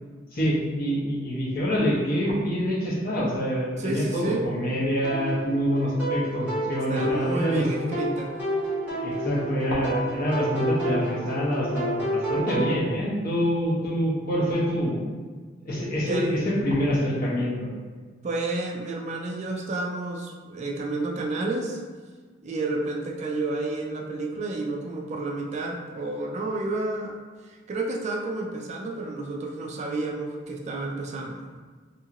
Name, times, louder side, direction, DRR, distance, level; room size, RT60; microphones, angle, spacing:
voice 1, 0.3-7.7 9.0-15.0 15.6-17.7, equal, 50° left, -6 dB, 0.8 m, -26 dB
voice 2, 3.8-4.5 6.9-8.3 16.0-16.4 18.2-21.8 22.4-27.1 27.7-31.6, right 2 dB, 35° right, 0 dB, 0.3 m, -30 dB
sound 1, 5.0-12.7, right 1 dB, 10° right, 1.2 m, -30 dB
2.8 x 2.5 x 2.8 m, 1.5 s
head